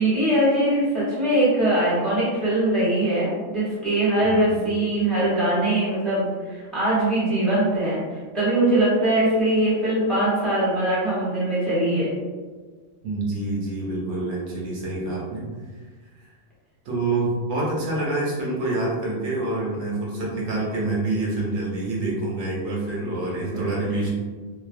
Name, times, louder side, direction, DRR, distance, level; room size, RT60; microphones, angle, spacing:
voice 1, 0.0-12.1, right 1 dB, ahead, -10 dB, 0.9 m, -22 dB
voice 2, 4.2-4.6 13.0-15.5 16.2-16.3 16.8-24.1, right 2 dB, 80° right, -4 dB, 1.0 m, -27 dB
2.6 x 2.0 x 2.5 m, 1.5 s
omnidirectional pair, 1.2 m